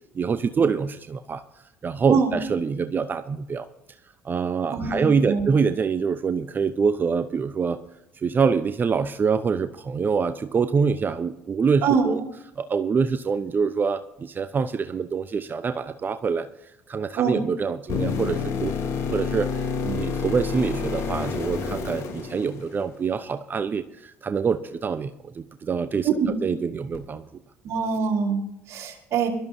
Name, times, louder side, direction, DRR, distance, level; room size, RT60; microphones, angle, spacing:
voice 1, 0.1-1.4 1.8-3.7 4.2-7.8 8.2-12.2 12.6-18.7 19.0-26.1 26.4-27.2, right 5 dB, 35° right, 11 dB, 0.8 m, -25 dB
voice 2, 4.7-5.5 11.8-12.1 17.1-17.4 26.0-26.3 27.6-29.3, right 6 dB, 55° right, 0 dB, 3.7 m, -24 dB
sound 1, 17.9-23.0 26.9-27.0, left 5 dB, 55° left, 3.2 m, -28 dB
22.5 x 13.5 x 2.7 m, 0.84 s
hypercardioid pair, 60°, 6 cm